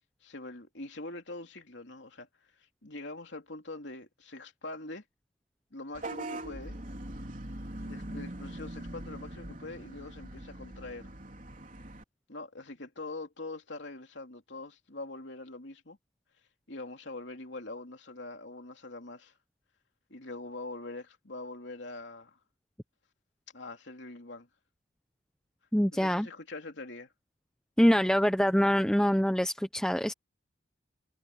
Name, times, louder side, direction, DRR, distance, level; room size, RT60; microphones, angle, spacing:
voice 1, 0.2-2.3 2.6-5.0 5.7-6.8 7.8-11.1 12.3-16.0 16.7-19.3 20.1-22.4 23.5-24.5 25.9-27.1, left 2 dB, 65° left, 3.1 m, -43 dB
Vehicle horn car horn honking / Bus, 5.9-12.0, right 1 dB, 40° right, 4.0 m, -42 dB
voice 2, 25.7-26.3 27.8-30.1, equal, 5° left, 0.7 m, -25 dB
head